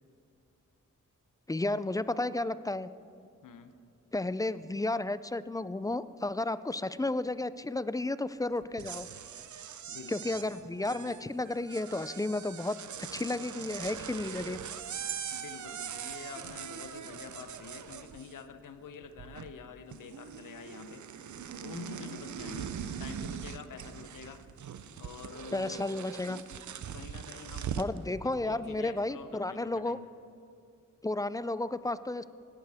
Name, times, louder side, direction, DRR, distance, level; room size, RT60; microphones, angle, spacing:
voice 1, 1.5-2.9 4.1-9.1 10.1-14.6 25.5-26.4 27.8-30.0 31.0-32.2, left 2 dB, 10° left, 15 dB, 0.3 m, -33 dB
voice 2, 3.4-3.7 9.9-11.5 15.3-21.0 21.6-24.4 25.0-25.8 26.9-27.8 28.2-30.1, left 6 dB, 90° left, 10 dB, 0.7 m, -47 dB
sound 1, 8.6-18.6 18.9-19.7 19.9-28.0, right 8 dB, 70° right, 0.6 m, -41 dB
17.0 x 11.5 x 3.5 m, 2.5 s
cardioid pair, 70°, 31 cm